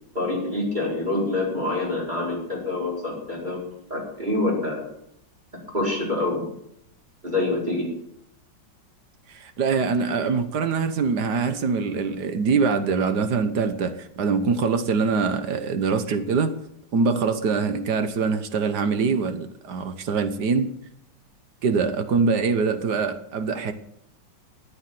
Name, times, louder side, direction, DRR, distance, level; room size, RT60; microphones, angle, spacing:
voice 1, 0.1-4.8 5.7-6.4 7.2-7.8, left 2 dB, 20° right, -3 dB, 4.9 m, -26 dB
voice 2, 9.3-16.5 16.9-20.7 21.6-23.7, right 5 dB, 65° right, 10 dB, 1.5 m, -24 dB
13.5 x 8.8 x 7.7 m, 0.75 s
omnidirectional pair, 2.1 m